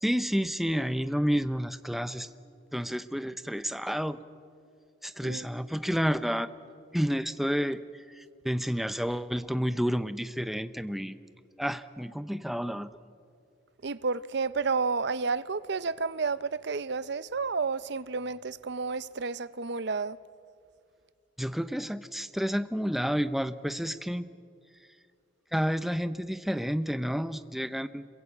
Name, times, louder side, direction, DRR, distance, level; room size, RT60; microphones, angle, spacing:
voice 1, 0.0-2.3 2.7-4.2 5.0-6.5 6.9-7.8 8.2-11.2 11.6-12.9 21.4-24.3 25.5-28.1, equal, ahead, 0.7 m, -30 dB
voice 2, 13.8-20.2, right 4 dB, 60° right, 0.6 m, -31 dB
26.5 x 22.5 x 8.5 m
head